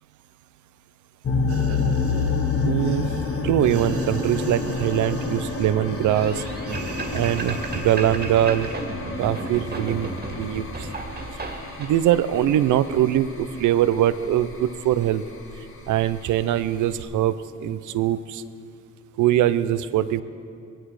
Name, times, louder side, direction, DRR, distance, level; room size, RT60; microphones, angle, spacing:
sound 1, 1.2-17.0, left 4 dB, 45° left, 1.5 m, -29 dB
sound 2, 1.5-8.8 9.1-9.3, right 3 dB, 50° right, 1.6 m, -39 dB
voice 1, 2.6-3.1 3.4-6.4 7.1-8.7 9.2-10.1 10.4-10.6 11.8-15.2 15.9-18.4 19.2-20.2, right 12 dB, 80° right, 13 dB, 0.7 m, -22 dB
sound 3, 6.1-11.9, right 2 dB, 30° right, 2.0 m, -33 dB
18.5 x 15.5 x 4.9 m, 2.5 s
cardioid pair, 90°, 30 cm